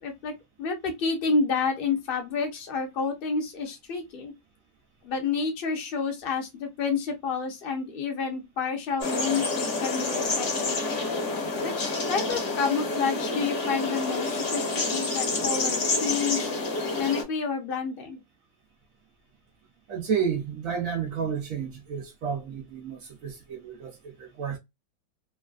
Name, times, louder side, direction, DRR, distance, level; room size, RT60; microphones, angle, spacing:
voice 1, 0.0-0.3 0.6-4.3 5.0-10.8 11.6-16.5 16.9-18.2, left 5 dB, 55° left, 0.6 m, -29 dB
sound 1, 9.0-17.2, left 3 dB, 40° left, 1.0 m, -28 dB
voice 2, 19.9-24.6, right 7 dB, 80° right, 0.7 m, -31 dB
3.2 x 2.4 x 2.3 m
omnidirectional pair, 2.1 m